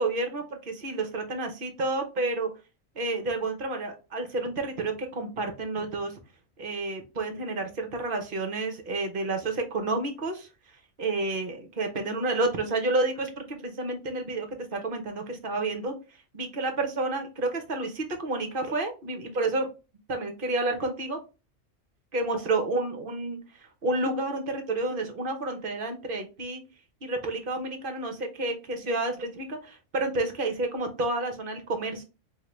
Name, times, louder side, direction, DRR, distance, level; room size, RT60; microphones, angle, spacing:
voice 1, 0.0-2.5 3.0-6.1 6.6-10.5 11.0-15.9 16.3-19.7 20.1-21.2 22.1-23.4 23.8-26.6 27.0-32.0, right 2 dB, 50° right, 5 dB, 0.9 m, -30 dB
3.6 x 2.9 x 3.0 m, 0.30 s
omnidirectional pair, 1.3 m